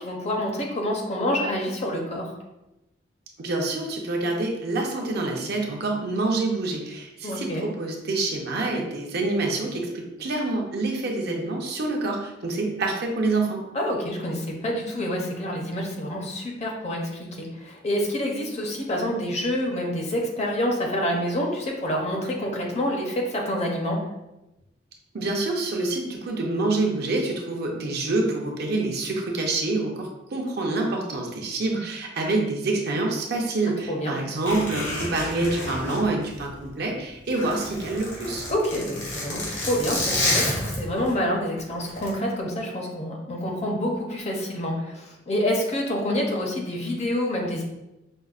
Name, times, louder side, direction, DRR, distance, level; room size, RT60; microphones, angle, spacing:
voice 1, 0.0-2.3 7.2-7.6 13.7-24.0 33.9-34.2 38.5-47.6, equal, 35° left, 1 dB, 0.6 m, -27 dB
voice 2, 3.4-13.6 25.1-38.5, right 2 dB, 60° right, 1 dB, 0.6 m, -27 dB
Zipper (clothing), 34.4-36.8 37.2-41.1 41.8-42.1, left 1 dB, 85° left, 1.3 m, -29 dB
5.2 x 2.0 x 2.4 m, 0.95 s
head